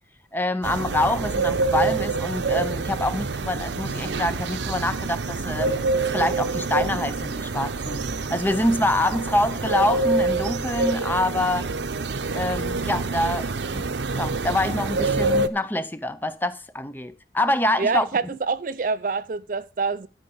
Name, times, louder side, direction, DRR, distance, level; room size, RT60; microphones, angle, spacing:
voice 1, 0.3-5.8 6.1-11.7 12.3-13.9 14.1-18.1, left 1 dB, 10° left, 0.6 m, -26 dB
sound 1, 0.6-15.5, right 3 dB, 85° right, 0.8 m, -26 dB
voice 2, 17.8-20.1, right 4 dB, 50° right, 0.5 m, -26 dB
12.0 x 5.1 x 6.9 m
head